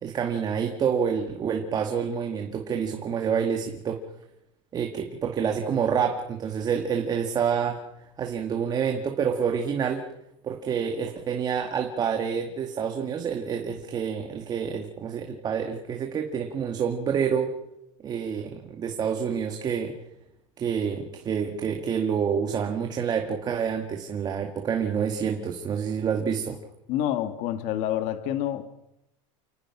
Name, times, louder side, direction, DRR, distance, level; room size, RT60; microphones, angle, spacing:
voice 1, 0.0-4.0 4.7-7.8 8.2-10.0 10.4-17.5 18.0-19.9 20.6-26.6, right 7 dB, 25° right, 4 dB, 2.1 m, -28 dB
voice 2, 26.9-28.7, left 11 dB, 50° left, 9 dB, 1.8 m, -28 dB
29.0 x 19.5 x 6.1 m, 0.85 s
supercardioid pair, 150°, 16 cm